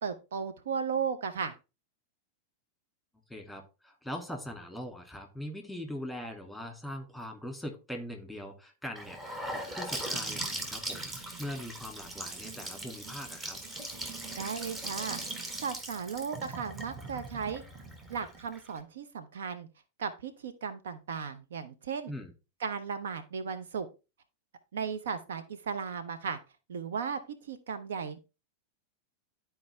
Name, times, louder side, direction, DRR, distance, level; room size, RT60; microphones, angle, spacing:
voice 1, 0.0-1.6 14.4-17.6 18.1-19.7 20.0-22.1 22.6-23.9 24.7-26.4 26.7-28.2, right 6 dB, 60° right, 10 dB, 0.7 m, -36 dB
voice 2, 3.3-13.6 22.1-22.3, left 1 dB, ahead, 3 dB, 2.2 m, -41 dB
Gurgling / Sink (filling or washing) / Bathtub (filling or washing), 9.0-18.8, right 1 dB, 20° right, 1.7 m, -39 dB
11.5 x 4.6 x 3.3 m, 0.29 s
figure-of-eight pair, 90°, 0 cm